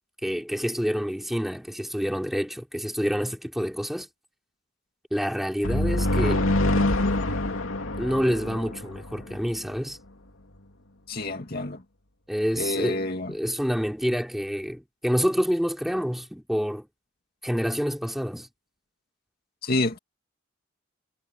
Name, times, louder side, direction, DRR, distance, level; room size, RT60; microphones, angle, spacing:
voice 1, 0.2-4.1 5.1-6.5 8.0-10.0 12.3-16.9 17.4-18.5, equal, ahead, 3.8 m, -27 dB
sound 1, 5.6-9.4, left 1 dB, 80° left, 2.7 m, -25 dB
voice 2, 11.1-11.8 12.6-13.3 19.6-20.0, left 2 dB, 50° left, 2.2 m, -28 dB
head